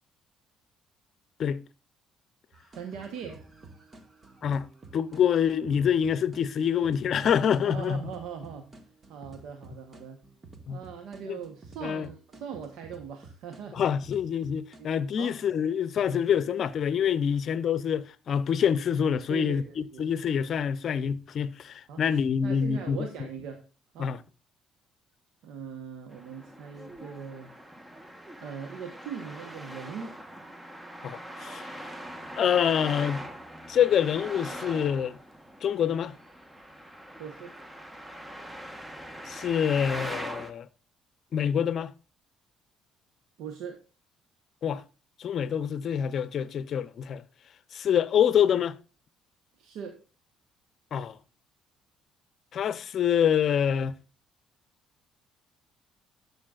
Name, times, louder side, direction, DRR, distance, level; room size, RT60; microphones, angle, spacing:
sound 1, 2.5-14.8, right 3 dB, 35° right, 1.5 m, -51 dB
voice 1, 2.7-3.4 7.7-10.2 10.7-13.9 14.8-14.9 15.2-15.4 16.0-16.3 19.3-20.1 21.9-23.6 23.9-24.1 25.4-27.5 28.4-30.2 37.2-37.5 43.4-43.8 49.6-50.0, right 7 dB, 75° right, 1.1 m, -40 dB
voice 2, 4.4-8.0 10.7-10.8 11.2-11.4 11.8-12.1 13.7-23.0 24.0-24.2 31.0-31.7 32.4-33.3 33.7-35.2 35.6-36.2 39.3-40.7 41.3-41.9 44.6-44.8 45.2-47.2 47.7-48.8 50.9-51.2 52.5-54.0, left 8 dB, 60° left, 0.6 m, -26 dB
Traffic noise roadway noise, 26.1-40.5, equal, 15° right, 1.2 m, -42 dB
11.5 x 7.0 x 2.4 m
supercardioid pair, 75°, 0 cm